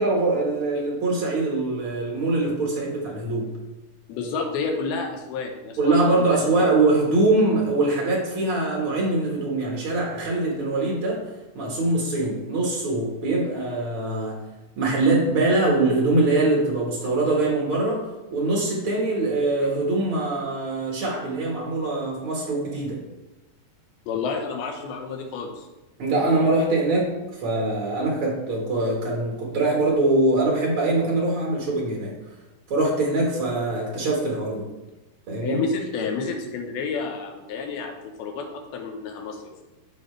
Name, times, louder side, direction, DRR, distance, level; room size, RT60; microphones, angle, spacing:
voice 1, 0.0-3.5 5.8-11.2 11.5-14.4 14.8-23.0 26.0-32.2 32.7-34.6 35.3-35.6, right 2 dB, 70° right, -2 dB, 1.2 m, -23 dB
voice 2, 4.1-6.6 24.1-25.7 35.4-39.4, left 4 dB, 75° left, 3 dB, 2.7 m, -30 dB
14.0 x 4.7 x 3.2 m, 1.1 s
omnidirectional pair, 4.9 m